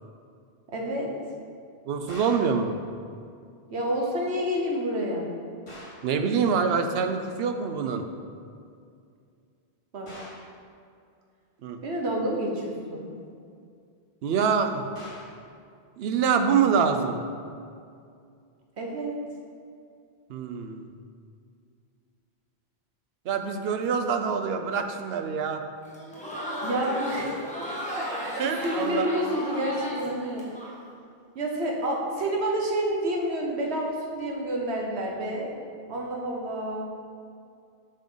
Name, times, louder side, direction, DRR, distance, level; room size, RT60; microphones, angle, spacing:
voice 1, 0.7-1.1 3.7-5.3 9.9-10.1 11.8-13.1 18.8-19.2 26.6-27.4 28.0-28.3 28.6-30.4 31.3-35.5 35.9-36.8, right 1 dB, 85° right, -1 dB, 1.3 m, -29 dB
voice 2, 1.9-2.8 6.0-8.1 11.6-11.8 14.2-14.8 16.0-17.2 20.3-20.9 23.3-25.6 27.9-28.0 28.4-29.1, right 6 dB, 70° right, 7 dB, 0.8 m, -25 dB
sound 1, 2.1-2.6 5.7-6.1 10.1-10.5 14.9-15.4, left 1 dB, 30° left, 1.3 m, -44 dB
Crowd, 25.8-30.7, equal, 5° left, 1.2 m, -34 dB
7.2 x 5.4 x 3.9 m, 2.3 s
omnidirectional pair, 1.1 m